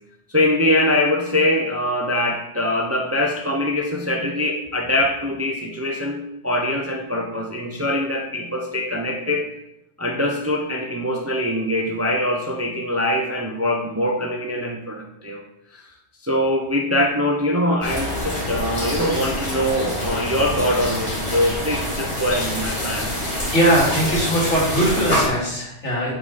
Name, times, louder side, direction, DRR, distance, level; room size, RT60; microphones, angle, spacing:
voice 1, 0.3-9.5 10.0-15.4 15.7-15.8 16.2-23.1, left 1 dB, 20° right, 1 dB, 0.4 m, -23 dB
sound 1, 17.8-25.3, left 1 dB, 35° left, 2.2 m, -26 dB
voice 2, 23.5-26.1, right 1 dB, 80° left, -6 dB, 2.5 m, -20 dB
7.7 x 3.8 x 4.0 m, 0.84 s
omnidirectional pair, 1.2 m